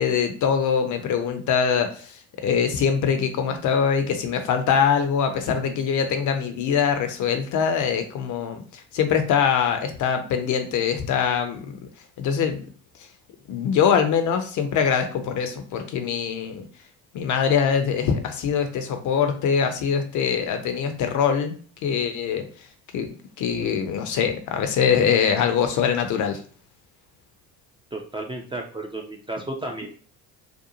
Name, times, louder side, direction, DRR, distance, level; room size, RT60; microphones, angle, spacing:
voice 1, 0.0-11.8 12.2-12.7 13.5-16.6 17.1-21.6 21.8-22.4 22.9-23.1 23.4-26.4, left 7 dB, 45° left, 7 dB, 0.6 m, -23 dB
voice 2, 27.9-29.9, right 2 dB, 10° right, 1 dB, 0.4 m, -33 dB
2.5 x 2.2 x 2.9 m, 0.43 s
hypercardioid pair, 55°, 43 cm